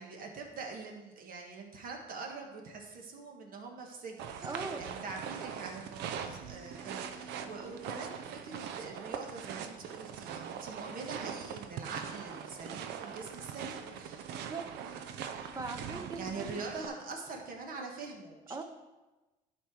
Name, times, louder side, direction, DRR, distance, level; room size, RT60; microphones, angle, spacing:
voice 1, 0.0-14.3 15.7-18.6, right 4 dB, 60° right, 1 dB, 1.6 m, -44 dB
sound 1, 4.2-16.9, right 8 dB, 85° right, 0.6 m, -42 dB
voice 2, 4.4-5.0 14.3-14.7 15.5-16.6 18.5-18.6, right 3 dB, 20° right, 5 dB, 0.8 m, -40 dB
11.0 x 4.5 x 4.7 m, 1.1 s
cardioid pair, 110°, 17 cm